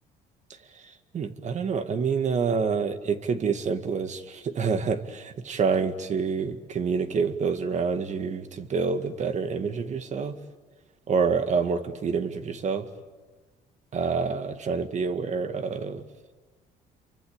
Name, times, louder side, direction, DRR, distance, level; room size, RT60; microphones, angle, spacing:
voice 1, 0.8-10.4 11.1-12.9 13.9-16.0, right 5 dB, 45° right, 9 dB, 1.9 m, -27 dB
28.0 x 24.0 x 8.8 m, 1.3 s
cardioid pair, 110°, 17 cm